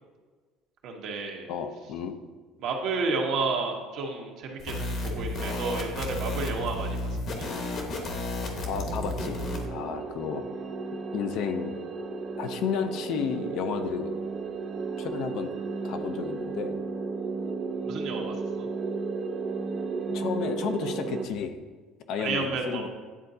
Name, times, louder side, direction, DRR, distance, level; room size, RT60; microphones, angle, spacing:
voice 1, 0.8-1.5 2.6-7.5 17.8-18.7 22.2-22.9, right 4 dB, 60° right, 1 dB, 1.1 m, -31 dB
voice 2, 1.5-2.1 8.7-9.4 9.7-10.4 11.1-11.8 12.4-14.1 15.0-15.5 15.8-16.8 20.1-21.6 22.1-22.9, left 7 dB, 60° left, 8 dB, 0.5 m, -32 dB
sound 1, 4.6-9.7, left 2 dB, 45° left, 1.1 m, -32 dB
sound 2, 8.5-21.3, right 4 dB, 40° right, 0.5 m, -34 dB
9.9 x 3.9 x 2.7 m, 1.4 s
cardioid pair, 130°, 0 cm